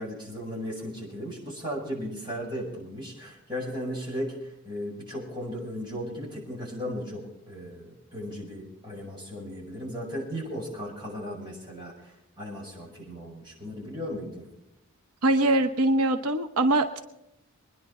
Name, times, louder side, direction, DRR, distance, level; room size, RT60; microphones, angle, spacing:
voice 1, 0.0-14.4, equal, 20° right, -4 dB, 6.6 m, -36 dB
voice 2, 15.2-17.0, right 1 dB, 85° right, 5 dB, 1.0 m, -23 dB
24.0 x 10.5 x 4.3 m, 0.83 s
head